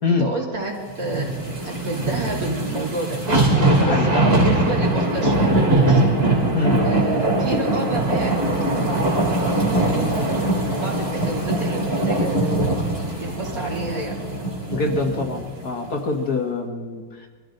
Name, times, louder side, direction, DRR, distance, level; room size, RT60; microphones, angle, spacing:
voice 1, 0.1-1.3 1.6-3.2 3.8-6.1 6.8-10.4 10.8-12.9 13.2-14.2, right 3 dB, 50° right, -3 dB, 3.8 m, -30 dB
sound 1, 1.0-15.4 15.9-16.0, right 1 dB, 30° right, 3.5 m, -21 dB
voice 2, 3.8-4.1 6.5-6.8 14.7-17.3, left 3 dB, 55° left, 2 dB, 2.1 m, -24 dB
23.5 x 14.5 x 3.9 m, 1.5 s
omnidirectional pair, 2.0 m